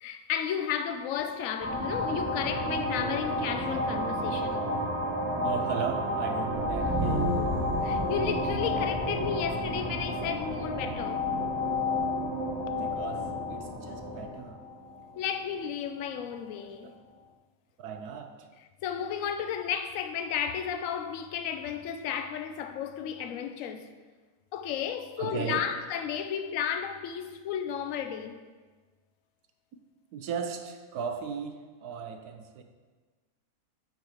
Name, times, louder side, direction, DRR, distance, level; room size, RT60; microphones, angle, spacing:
voice 1, 0.0-4.6 7.8-11.3 15.2-16.9 18.8-23.9 24.5-28.4, left 8 dB, 65° left, 1.0 m, -33 dB
sound 1, 1.6-15.7, left 1 dB, 15° right, 1.5 m, -31 dB
voice 2, 5.4-7.3 12.7-14.6 16.8-17.0 17.8-18.5 25.2-25.6 30.1-32.6, right 6 dB, 85° right, 1.3 m, -36 dB
11.0 x 4.6 x 5.0 m
omnidirectional pair, 1.6 m